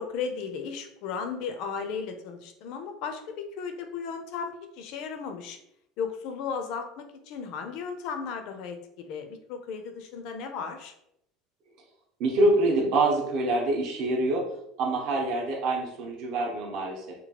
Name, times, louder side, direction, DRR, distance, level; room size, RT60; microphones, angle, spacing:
voice 1, 0.0-5.6 6.0-10.9, left 6 dB, 55° left, 6 dB, 0.4 m, -35 dB
voice 2, 12.2-14.5 14.8-17.1, right 2 dB, 50° right, 0 dB, 0.7 m, -25 dB
2.9 x 2.3 x 2.8 m, 0.75 s
cardioid pair, 170°, 0 cm